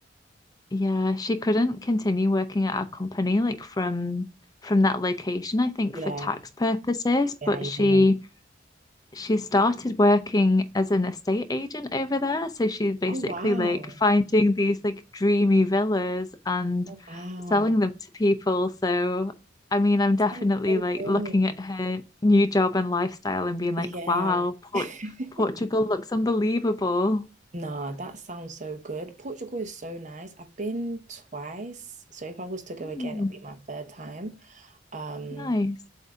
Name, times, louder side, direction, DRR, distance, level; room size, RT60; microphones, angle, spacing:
voice 1, 0.7-4.3 4.6-6.0 6.3-8.1 9.1-17.2 17.5-17.9 18.2-19.3 19.7-24.8 25.4-27.3 32.9-33.3 35.4-35.8, left 2 dB, 20° left, 0.6 m, -24 dB
voice 2, 5.9-6.4 7.4-8.1 13.1-14.0 16.9-17.7 20.3-21.4 23.8-24.5 24.7-25.5 27.5-35.5, right 2 dB, 45° right, 0.9 m, -36 dB
7.8 x 2.7 x 4.8 m
head